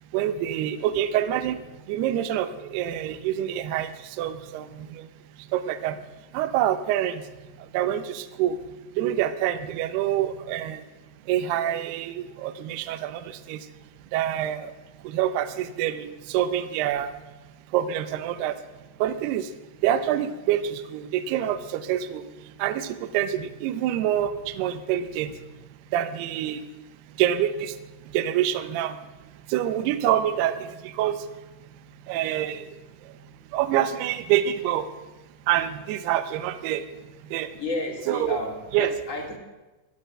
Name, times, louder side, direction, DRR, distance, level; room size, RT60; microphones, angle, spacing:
voice 1, 0.1-1.6 1.9-3.9 4.2-5.1 5.5-6.0 6.3-7.2 7.7-8.6 9.0-10.8 11.3-13.6 14.1-14.7 15.0-17.1 17.7-18.5 19.0-19.5 19.8-22.2 22.6-25.3 25.9-26.6 27.2-27.7 28.1-29.0 29.5-31.2 32.1-32.7 33.5-34.9 35.5-36.8 37.3-37.5 38.1-38.4 38.7-38.9, right 11 dB, 75° right, 10 dB, 2.5 m, -26 dB
voice 2, 37.5-39.4, left 2 dB, 35° left, 1 dB, 1.2 m, -32 dB
14.0 x 10.5 x 8.8 m, 1.1 s
omnidirectional pair, 5.4 m